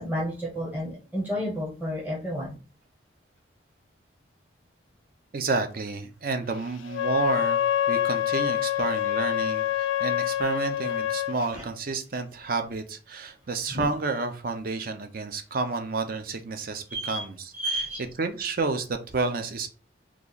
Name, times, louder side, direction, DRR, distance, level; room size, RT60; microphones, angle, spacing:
voice 1, 0.0-2.6 11.5-11.6 13.7-13.9 16.9-17.2 17.5-18.0, equal, 10° right, -6 dB, 0.8 m, -31 dB
voice 2, 5.3-7.6 7.9-17.5 18.2-19.7, right 3 dB, 50° right, 7 dB, 0.5 m, -30 dB
Wind instrument woodwind instrument, 6.9-11.4, left 12 dB, 90° left, 0.3 m, -26 dB
3.1 x 2.4 x 3.8 m, 0.36 s
head